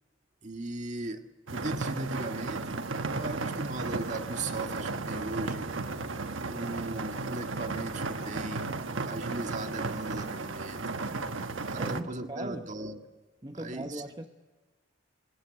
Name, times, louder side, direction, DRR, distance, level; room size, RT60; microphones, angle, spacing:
voice 1, 0.4-1.2 1.5-2.8 3.1-5.6 6.5-8.6 9.0-11.0 11.7-13.0 13.5-14.0, right 2 dB, 40° right, 5 dB, 1.8 m, -37 dB
sound 1, 1.5-12.0, right 3 dB, 85° right, 1.2 m, -34 dB
voice 2, 11.7-12.7 13.4-14.3, right 1 dB, 20° right, 5 dB, 0.9 m, -39 dB
25.0 x 21.0 x 7.9 m, 1.3 s
head